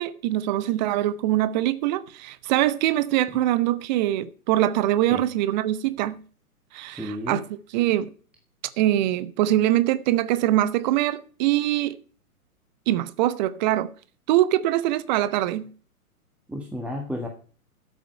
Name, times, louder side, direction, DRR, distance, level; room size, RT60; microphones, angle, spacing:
voice 1, 0.0-6.2 6.7-7.4 7.7-8.1 8.8-12.0 12.9-13.9 14.3-15.7, right 14 dB, 30° right, 0.9 m, -23 dB
voice 2, 6.9-7.4 16.5-17.3, equal, 5° right, 1.4 m, -32 dB
12.5 x 8.2 x 5.5 m
figure-of-eight pair, 125°, 44 cm